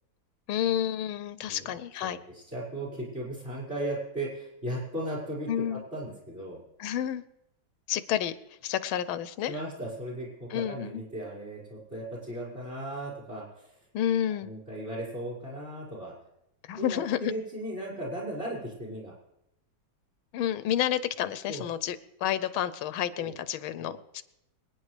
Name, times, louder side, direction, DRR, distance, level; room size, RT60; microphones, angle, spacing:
voice 1, 0.5-2.2 5.5-5.8 6.8-7.2 7.9-8.4 8.6-9.5 10.5-11.0 13.9-14.5 16.6-17.3 20.3-24.2, left 10 dB, 90° left, 14 dB, 1.5 m, -30 dB
voice 2, 2.0-6.6 9.5-13.7 14.4-16.1 16.7-19.1 21.5-21.6 23.2-23.4 23.8-24.0, right 1 dB, 25° right, -4 dB, 5.1 m, -37 dB
26.0 x 9.4 x 3.2 m, 0.83 s
omnidirectional pair, 2.2 m